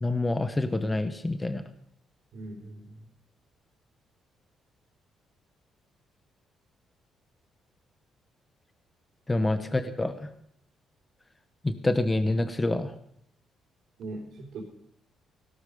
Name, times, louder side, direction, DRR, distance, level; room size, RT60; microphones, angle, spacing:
voice 1, 0.0-1.6 9.3-10.3 11.6-12.9, left 2 dB, 20° left, 9 dB, 1.1 m, -27 dB
voice 2, 2.3-3.0 9.6-9.8 14.0-14.6, right 2 dB, 75° right, -2 dB, 3.6 m, -41 dB
17.0 x 12.5 x 5.0 m, 0.70 s
cardioid pair, 90°, 0 cm